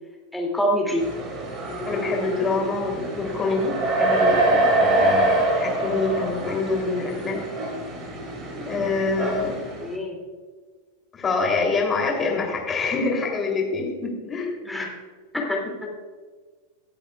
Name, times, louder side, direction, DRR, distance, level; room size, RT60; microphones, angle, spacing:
voice 1, 0.3-1.0 9.8-10.2 14.7-14.9 15.3-15.9, equal, 5° left, -1 dB, 2.6 m, -25 dB
sound 1, 1.0-10.0, right 1 dB, 35° right, 2.6 m, -25 dB
voice 2, 1.9-7.4 8.6-9.6 11.1-14.7, left 3 dB, 20° left, 0 dB, 3.1 m, -26 dB
24.5 x 8.4 x 2.4 m, 1.5 s
figure-of-eight pair, 90°, 0 cm